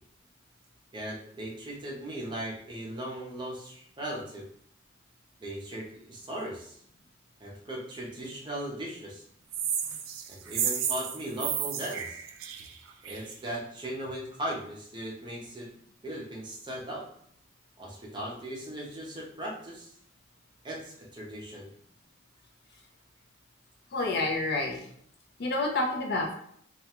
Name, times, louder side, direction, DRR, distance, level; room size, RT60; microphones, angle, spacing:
voice 1, 0.9-4.4 5.4-6.8 7.4-9.2 10.3-12.2 13.0-15.7 16.0-17.0 17.8-19.9 20.6-21.7, right 1 dB, 25° right, -3 dB, 0.6 m, -38 dB
sound 1, 9.5-13.3, right 8 dB, 90° right, 0.3 m, -32 dB
voice 2, 23.9-24.9 25.4-26.3, left 2 dB, 55° left, 0 dB, 0.5 m, -29 dB
2.3 x 2.1 x 2.9 m, 0.65 s
head